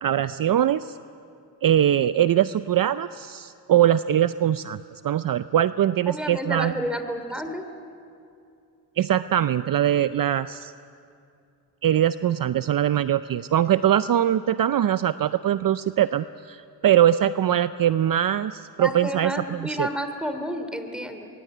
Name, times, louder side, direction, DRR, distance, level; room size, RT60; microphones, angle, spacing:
voice 1, 0.0-0.9 1.6-6.7 9.0-10.7 11.8-19.9, right 11 dB, 55° right, 13 dB, 0.6 m, -22 dB
voice 2, 6.1-7.6 18.8-21.3, equal, ahead, 8 dB, 3.3 m, -30 dB
23.5 x 23.0 x 9.2 m, 2.5 s
cardioid pair, 75°, 42 cm